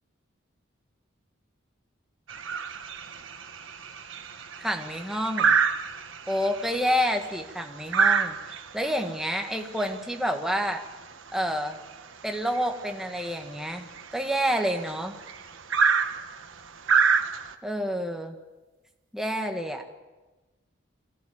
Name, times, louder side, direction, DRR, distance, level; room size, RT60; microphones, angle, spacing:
sound 1, 2.3-17.5, right 5 dB, 80° right, 1.3 m, -28 dB
voice 1, 4.6-5.6 6.3-10.8 11.3-11.8 12.2-15.2 17.6-18.4 19.1-19.8, equal, ahead, 3 dB, 1.6 m, -29 dB
22.5 x 15.5 x 8.8 m, 1.2 s
head